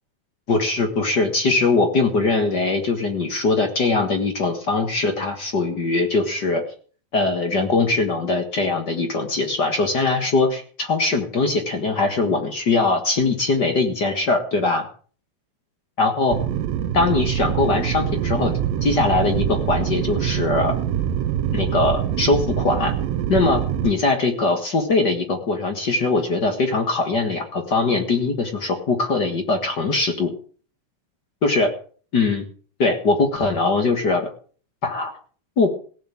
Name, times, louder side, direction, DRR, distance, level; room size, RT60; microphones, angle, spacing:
voice 1, 0.5-6.6 7.1-14.9 16.0-16.4 16.9-18.5 18.8-20.7 21.5-22.9 23.3-30.3 31.4-31.7 32.1-32.4 32.8-34.3 34.8-35.1 35.6-35.7, left 3 dB, 45° left, 5 dB, 1.5 m, -21 dB
sound 1, 16.3-23.9, right 10 dB, 85° right, 2.6 m, -24 dB
17.0 x 7.3 x 7.4 m, 0.43 s
omnidirectional pair, 4.0 m